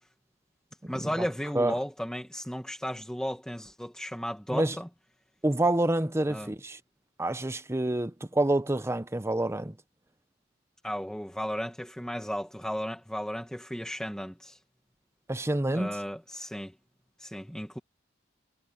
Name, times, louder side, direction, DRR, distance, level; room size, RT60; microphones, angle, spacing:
voice 1, 0.9-4.9 6.3-6.5 10.8-14.6 15.7-16.7 17.2-17.8, equal, 5° left, 1.5 m, -34 dB
voice 2, 5.4-6.8 7.2-9.7 15.3-16.0, right 1 dB, 15° right, 0.7 m, -27 dB
head